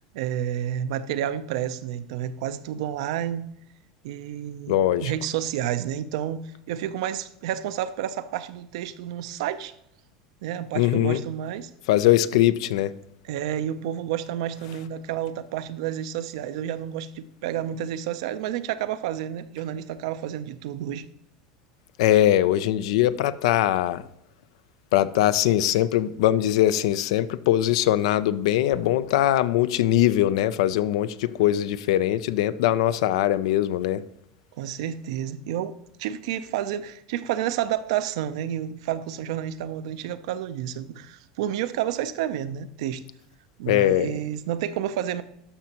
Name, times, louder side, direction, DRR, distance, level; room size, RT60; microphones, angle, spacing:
voice 1, 0.1-3.5 4.0-9.7 10.4-11.7 13.2-21.1 34.6-43.0 43.6-45.2, right 10 dB, 75° right, 0.5 m, -30 dB
voice 2, 4.7-5.1 10.8-11.2 11.9-12.9 22.0-24.0 24.9-34.0 43.7-44.1, left 13 dB, 75° left, 0.4 m, -21 dB
12.5 x 5.9 x 2.9 m
supercardioid pair, 105°, 3 cm